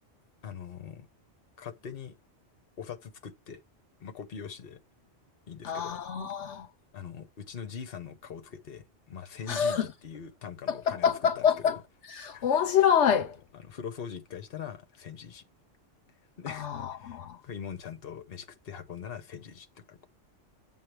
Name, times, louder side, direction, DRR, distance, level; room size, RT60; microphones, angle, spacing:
voice 1, 0.4-1.1 1.6-2.2 2.8-3.6 4.0-4.8 5.5-6.0 6.9-11.8 12.3-12.5 13.1-13.2 13.5-15.4 16.4-20.1, left 7 dB, 55° left, 1.1 m, -42 dB
voice 2, 5.6-6.7 9.5-9.9 10.7-11.8 12.1-13.4 16.5-17.4, left 8 dB, 75° left, 1.1 m, -26 dB
7.5 x 7.2 x 3.3 m
omnidirectional pair, 1.2 m